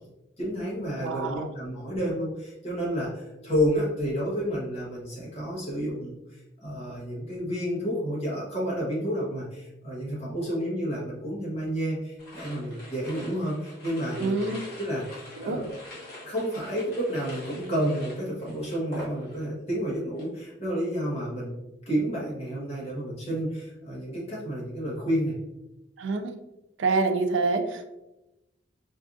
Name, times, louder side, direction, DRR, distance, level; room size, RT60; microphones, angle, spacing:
voice 1, 0.4-6.1 6.6-14.4 14.8-15.1 15.4-15.7 16.2-21.6 21.9-25.3, equal, 30° left, -7 dB, 1.0 m, -30 dB
voice 2, 1.0-1.5 14.2-14.6 15.4-15.6 26.0-26.4 26.8-27.8, right 3 dB, 80° right, 7 dB, 0.4 m, -26 dB
sound 1, 12.2-19.6 19.9-20.4, left 1 dB, 50° left, 1.2 m, -45 dB
4.3 x 2.4 x 2.5 m, 0.94 s
head